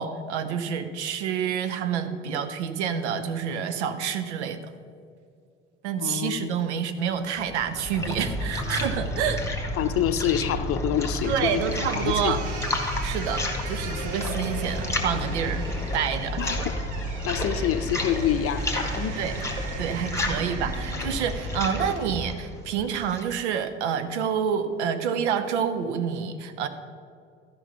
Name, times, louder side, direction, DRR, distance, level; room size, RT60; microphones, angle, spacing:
voice 1, 0.0-4.7 5.8-9.4 11.3-12.4 13.0-15.7 15.9-16.4 19.2-19.3 19.8-26.7, right 7 dB, 70° right, 10 dB, 0.8 m, -28 dB
voice 2, 6.0-6.5 9.8-11.6 12.0-12.4 16.4-16.8 17.2-19.2, left 10 dB, 40° left, 11 dB, 0.6 m, -27 dB
sound 1, 7.4-23.4, left 1 dB, 10° left, 1.9 m, -31 dB
sound 2, 11.2-22.3, right 3 dB, 55° right, 1.4 m, -40 dB
13.5 x 5.6 x 5.5 m, 2.3 s
figure-of-eight pair, 55°, 35 cm